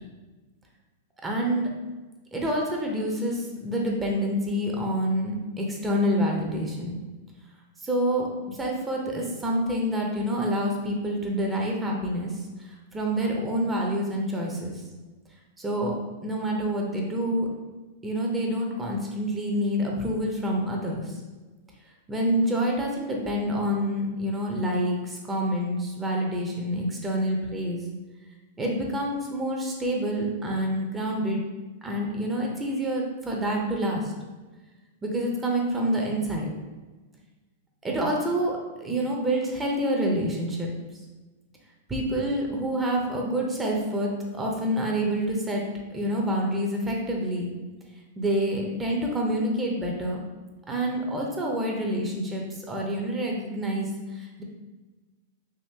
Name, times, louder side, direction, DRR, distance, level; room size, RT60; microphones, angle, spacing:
voice 1, 1.2-1.7 2.3-7.0 7.8-12.4 12.9-14.8 15.6-15.9 16.2-17.5 18.0-21.1 22.1-27.8 28.6-31.5 31.8-34.1 35.0-36.5 37.8-40.7 41.9-47.5 48.2-50.2 50.7-54.4, equal, 15° right, -1 dB, 0.6 m, -27 dB
3.5 x 2.5 x 2.8 m, 1.2 s
hypercardioid pair, 125°, 0 cm